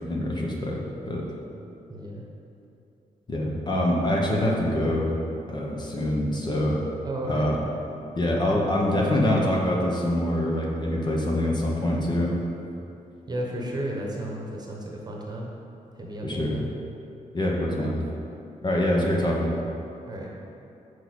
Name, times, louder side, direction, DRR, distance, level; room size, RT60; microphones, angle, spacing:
voice 1, 0.1-0.8 1.1-1.2 3.3-5.1 5.5-6.8 7.3-7.6 8.2-12.4 16.2-16.5 17.3-17.9 18.6-19.5, left 1 dB, 30° left, -2 dB, 1.1 m, -25 dB
voice 2, 1.9-2.2 7.0-7.5 13.3-15.5 16.0-16.7 20.1-20.3, right 1 dB, 30° right, -2 dB, 1.1 m, -33 dB
6.3 x 4.8 x 6.4 m, 2.8 s
wide cardioid pair, 135°, 14 cm